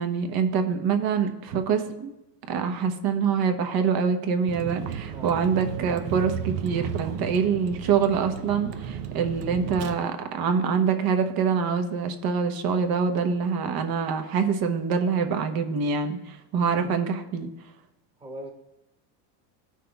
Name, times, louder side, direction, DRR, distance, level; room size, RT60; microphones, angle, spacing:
voice 1, 0.0-2.1 2.5-17.5, right 6 dB, 45° right, 6 dB, 1.1 m, -25 dB
Vehicle, 4.5-9.9, right 8 dB, 75° right, 0.8 m, -34 dB
voice 2, 18.2-18.5, right 1 dB, 10° right, 2 dB, 1.3 m, -39 dB
16.5 x 6.0 x 2.3 m, 0.92 s
supercardioid pair, 105°, 49 cm